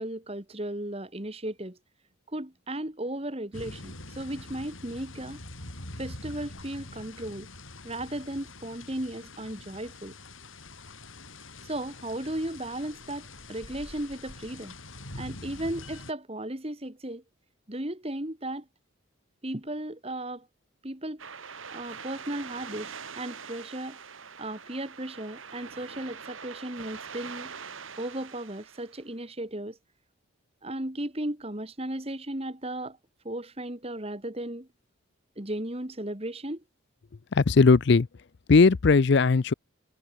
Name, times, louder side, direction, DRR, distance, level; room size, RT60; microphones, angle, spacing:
voice 1, 0.0-1.8 2.3-5.4 6.0-7.5 7.8-10.1 11.6-14.8 15.1-17.2 17.7-18.7 19.4-20.5 20.8-21.2 21.7-24.0 24.4-27.5 28.0-29.8 30.6-33.0 33.2-34.7 35.4-36.6, right 1 dB, 30° right, 2.0 m, -35 dB
sound 1, 3.5-16.1, left 2 dB, 75° left, 7.4 m, -44 dB
sound 2, 21.2-29.0, right 6 dB, 75° right, 2.4 m, -43 dB
voice 2, 37.3-38.1 38.5-39.5, left 4 dB, 55° left, 0.5 m, -18 dB
head